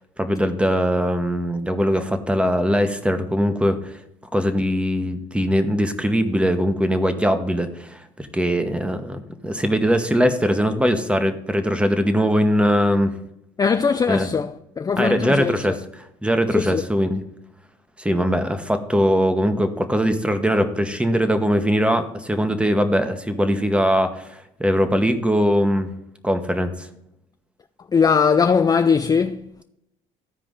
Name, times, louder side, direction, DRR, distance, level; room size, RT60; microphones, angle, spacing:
voice 1, 0.2-4.0 4.3-13.1 14.1-14.3 15.0-15.7 16.2-17.2 18.0-25.9 26.2-26.9, equal, 5° right, 1.2 m, -21 dB
voice 2, 13.6-15.8 16.5-16.8 27.9-29.6, left 6 dB, 20° left, 0.4 m, -20 dB
14.0 x 4.9 x 3.8 m
hypercardioid pair, 65°, 18 cm